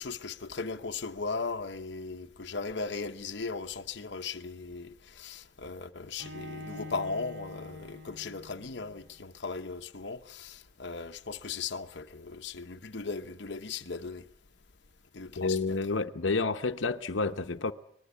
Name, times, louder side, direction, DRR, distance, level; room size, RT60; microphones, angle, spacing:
voice 1, 0.0-14.2 15.1-15.8, left 4 dB, 65° left, 0.9 m, -37 dB
Bowed string instrument, 6.2-9.2, left 2 dB, 65° right, 2.6 m, -45 dB
voice 2, 15.4-17.7, left 3 dB, 90° left, 0.9 m, -29 dB
24.5 x 20.0 x 8.3 m
head